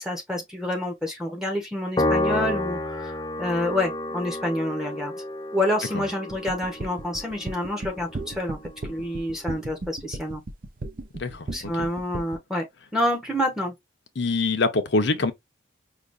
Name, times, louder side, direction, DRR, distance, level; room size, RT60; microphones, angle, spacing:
voice 1, 0.0-5.1 5.5-8.6 8.9-10.4 11.5-12.7 12.9-13.7, left 1 dB, 5° right, 0.9 m, -28 dB
Piano, 2.0-8.5, left 1 dB, 20° left, 0.5 m, -30 dB
sound 1, 6.3-12.4, right 2 dB, 45° right, 0.6 m, -35 dB
voice 2, 11.1-11.9 14.2-15.3, left 3 dB, 55° left, 0.7 m, -25 dB
4.9 x 2.5 x 2.5 m
head